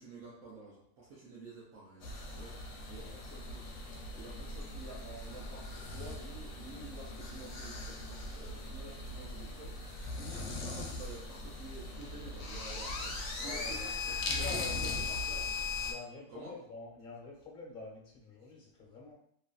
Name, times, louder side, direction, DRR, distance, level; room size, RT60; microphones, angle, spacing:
voice 1, 0.0-3.7 4.1-13.0 13.4-15.6 16.3-16.6, right 3 dB, 85° right, -6 dB, 1.0 m, -50 dB
sound 1, 2.0-15.9, left 3 dB, 80° left, 1.0 m, -39 dB
voice 2, 13.4-13.9 14.2-15.1 15.8-19.1, left 3 dB, 45° left, -3 dB, 0.9 m, -47 dB
2.9 x 2.4 x 2.3 m, 0.69 s
omnidirectional pair, 1.4 m